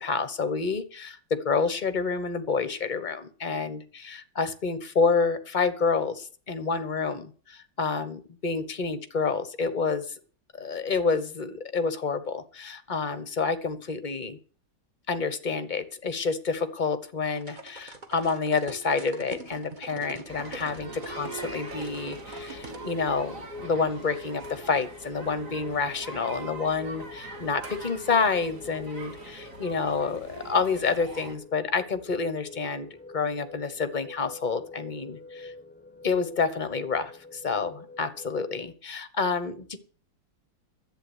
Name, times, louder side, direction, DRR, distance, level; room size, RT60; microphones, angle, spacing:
voice 1, 0.0-10.1 10.5-14.4 15.1-32.9 33.1-35.5 36.0-39.8, left 4 dB, 30° left, 11 dB, 1.0 m, -28 dB
sound 1, 17.4-22.8, right 3 dB, 25° right, 1.5 m, -43 dB
sound 2, 20.3-31.4, right 3 dB, 45° right, 2.4 m, -43 dB
sound 3, 20.9-38.7, left 3 dB, 10° left, 0.5 m, -46 dB
11.0 x 8.6 x 8.2 m, 0.41 s
omnidirectional pair, 2.0 m